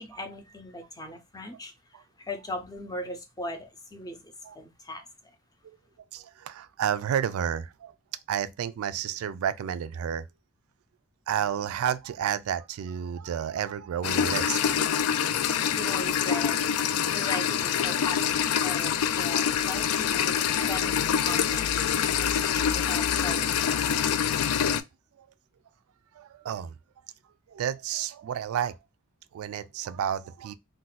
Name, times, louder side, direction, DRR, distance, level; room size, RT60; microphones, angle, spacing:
voice 1, 0.0-5.3 15.7-16.6 17.1-21.7 22.0-24.1, left 1 dB, 15° left, 0.5 m, -39 dB
voice 2, 6.1-7.9 8.3-10.2 11.3-14.7 22.0-22.3 25.2-25.3 26.1-26.8 27.5-28.8 29.3-30.5, right 9 dB, 80° right, 0.3 m, -31 dB
sound 1, 14.0-24.8, left 8 dB, 90° left, 0.3 m, -25 dB
2.4 x 2.2 x 3.9 m
head